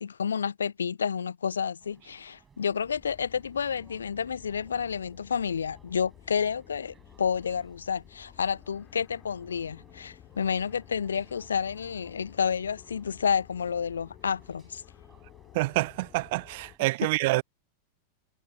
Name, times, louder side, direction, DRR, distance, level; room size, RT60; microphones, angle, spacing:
voice 1, 0.0-14.8, left 7 dB, 70° left, 0.5 m, -30 dB
sound 1, 1.8-16.8, right 6 dB, 20° right, 6.1 m, -62 dB
sound 2, 2.7-16.8, left 14 dB, 35° left, 2.3 m, -53 dB
voice 2, 15.5-17.4, right 22 dB, 50° right, 0.3 m, -27 dB
figure-of-eight pair, 90°, 0 cm